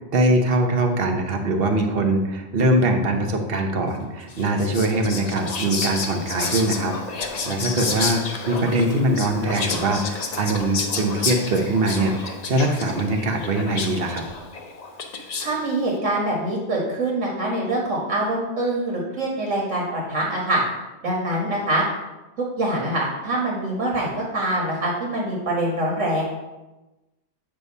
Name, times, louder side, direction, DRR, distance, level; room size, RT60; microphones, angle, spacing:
voice 1, 0.0-14.2, right 1 dB, 55° right, 4 dB, 1.0 m, -22 dB
Whispering, 4.3-15.7, left 4 dB, 40° left, 0.6 m, -30 dB
voice 2, 15.4-20.6 21.0-21.8 22.4-26.3, right 1 dB, 90° right, -3 dB, 1.9 m, -24 dB
8.1 x 3.4 x 5.3 m, 1.1 s
omnidirectional pair, 1.2 m